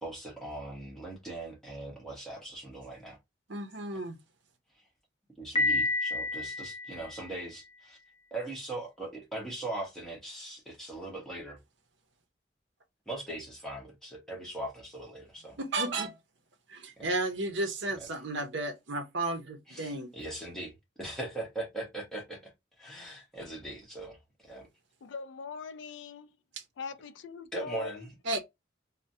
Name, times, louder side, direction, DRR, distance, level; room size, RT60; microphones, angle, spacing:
voice 1, 0.0-3.2 5.4-8.0 8.3-11.6 13.1-15.6 17.0-17.1 17.9-18.1 19.7-20.7 21.0-22.5 22.8-24.2 24.4-24.7 27.5-28.1, right 2 dB, ahead, 1.1 m, -40 dB
voice 2, 3.5-4.2 15.6-16.2 16.7-20.1 28.3-28.5, right 2 dB, 65° right, 0.7 m, -33 dB
Piano, 5.6-7.5, left 2 dB, 30° left, 0.8 m, -30 dB
voice 3, 25.0-26.3 26.8-28.1, left 5 dB, 70° left, 0.3 m, -41 dB
3.2 x 2.1 x 2.6 m
head